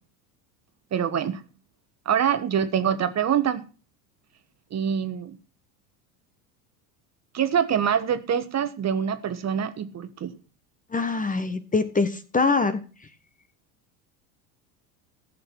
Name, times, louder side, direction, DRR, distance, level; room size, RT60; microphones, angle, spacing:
voice 1, 0.9-1.4 2.0-3.6 4.7-5.4 7.3-10.3, right 8 dB, 35° right, 11 dB, 1.3 m, -25 dB
voice 2, 10.9-12.8, left 4 dB, 15° left, 11 dB, 1.1 m, -24 dB
14.5 x 6.6 x 6.2 m, 0.37 s
hypercardioid pair, 90°, 47 cm